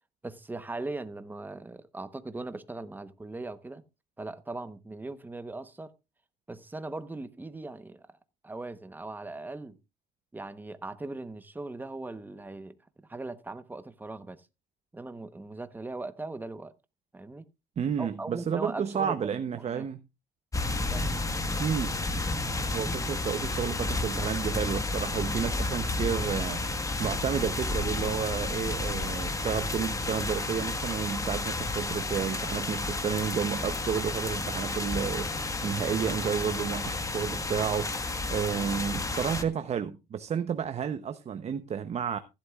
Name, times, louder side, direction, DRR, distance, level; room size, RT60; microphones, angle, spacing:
voice 1, 0.2-3.8 4.2-5.9 6.5-8.1 8.4-9.8 10.3-14.5 14.9-16.7 17.1-17.4 18.0-19.3 19.6-19.9 20.9-21.1 22.6-22.9, right 2 dB, 10° right, 1.0 m, -39 dB
voice 2, 17.8-20.0 21.6-21.9 22.7-37.9 38.3-42.2, right 7 dB, 40° right, 0.8 m, -31 dB
sound 1, 20.5-39.4, left 2 dB, 20° left, 1.4 m, -31 dB
15.5 x 11.5 x 2.4 m
cardioid pair, 110°, 17 cm